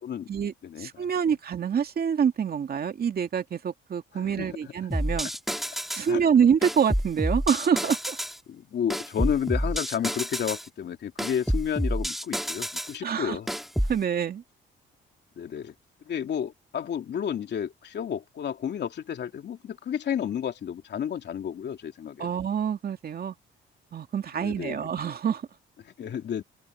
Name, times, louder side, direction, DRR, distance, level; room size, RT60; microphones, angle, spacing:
voice 1, 0.3-5.3 5.9-8.2 13.0-13.4 13.9-14.4 22.2-23.3 23.9-25.5, right 7 dB, 50° right, 2.4 m, -26 dB
voice 2, 4.1-4.7 6.1-6.3 8.5-13.5 15.4-15.7 16.0-22.3 24.4-24.9 26.0-26.4, left 8 dB, 60° left, 2.7 m, -31 dB
sound 1, 4.9-6.1 6.6-8.4 8.9-10.7 11.2-13.0 13.5-14.0, equal, ahead, 2.6 m, -29 dB
open air
cardioid pair, 90°, 20 cm